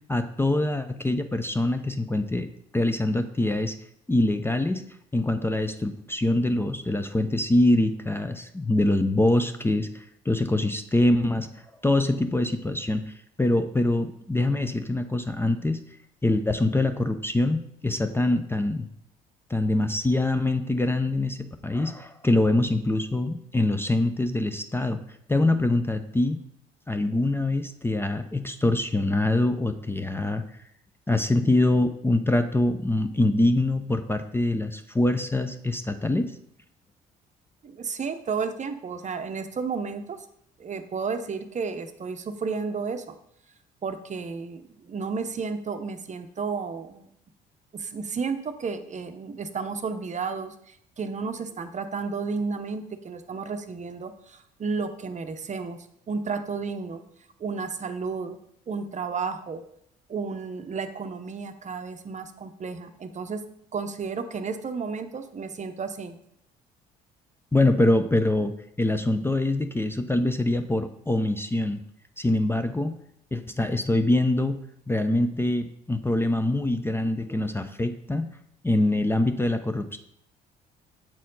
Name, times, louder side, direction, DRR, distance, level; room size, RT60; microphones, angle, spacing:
voice 1, 0.1-2.5 2.7-3.8 4.1-4.8 5.1-11.5 11.8-15.8 16.2-18.9 19.5-25.0 25.3-26.4 26.9-30.4 31.1-36.3 67.5-68.5 68.8-71.8 72.2-72.9 73.3-74.6 74.9-78.3 78.6-80.0, left 2 dB, 10° left, 8 dB, 0.5 m, -24 dB
voice 2, 37.6-40.2 40.6-43.1 43.8-47.1 47.7-55.8 56.1-57.0 57.4-58.4 58.7-59.6 60.1-63.4 63.7-66.2, right 5 dB, 35° right, 8 dB, 0.7 m, -32 dB
7.5 x 4.2 x 4.0 m, 0.72 s
hypercardioid pair, 60°, 21 cm